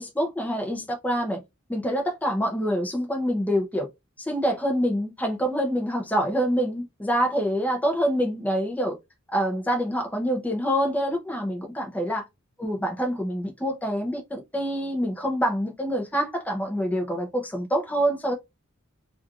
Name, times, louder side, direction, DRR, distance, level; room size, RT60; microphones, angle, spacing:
voice 1, 0.0-1.4 1.7-3.9 4.2-9.0 9.3-12.2 12.6-18.3, equal, 5° left, 0.7 m, -26 dB
3.1 x 2.6 x 2.4 m
head